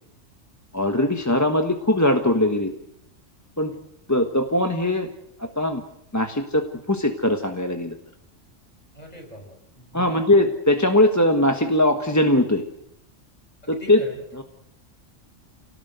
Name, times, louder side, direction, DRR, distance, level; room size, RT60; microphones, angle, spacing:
voice 1, 0.7-2.7 3.6-3.8 4.1-5.1 5.4-5.8 6.1-7.9 9.9-12.6 13.7-14.0 14.3-14.4, left 1 dB, 15° left, 5 dB, 1.3 m, -20 dB
voice 2, 8.9-10.2 13.8-14.1, equal, 30° left, 2 dB, 6.6 m, -42 dB
29.0 x 18.5 x 8.1 m, 0.79 s
omnidirectional pair, 1.3 m